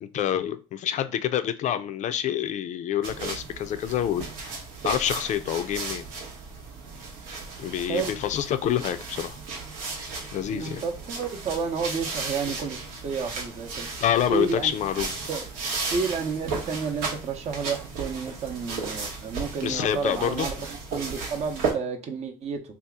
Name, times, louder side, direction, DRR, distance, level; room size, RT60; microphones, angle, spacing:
voice 1, 0.0-4.3 4.8-6.1 7.6-9.4 10.3-10.8 14.0-15.2 19.6-20.5, left 10 dB, 55° left, 0.4 m, -27 dB
sound 1, 3.0-21.7, right 4 dB, 90° right, 0.9 m, -35 dB
voice 2, 10.5-13.9 14.3-14.8 15.3-15.5 15.9-22.6, right 5 dB, 50° right, 0.7 m, -31 dB
2.8 x 2.4 x 3.5 m
supercardioid pair, 85°, 15 cm